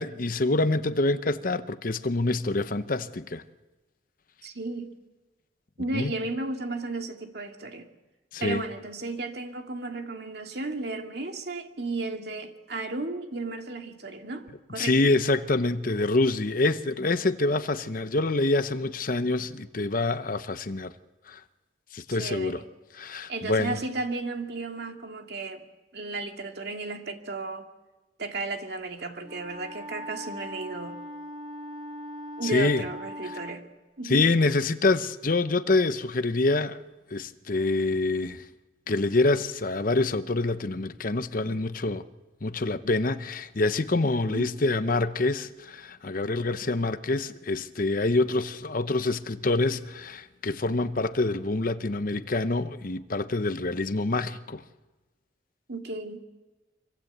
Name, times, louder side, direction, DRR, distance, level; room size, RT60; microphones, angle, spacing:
voice 1, 0.0-3.4 5.9-6.1 8.3-8.6 14.8-20.9 21.3-21.4 21.9-22.6 23.0-23.8 32.4-32.8 34.0-36.8 37.1-38.5 38.9-42.0 42.4-54.6, left 2 dB, 50° left, 0.8 m, -26 dB
voice 2, 4.4-4.9 5.8-7.9 8.4-14.5 14.7-15.0 22.2-22.6 23.3-25.7 25.9-27.6 28.2-31.0 32.4-33.6 34.0-34.3 44.3-44.6 55.7-56.2, right 3 dB, 60° right, 2.4 m, -34 dB
Wind instrument woodwind instrument, 29.2-33.6, equal, 30° right, 2.7 m, -40 dB
25.0 x 24.5 x 8.0 m
head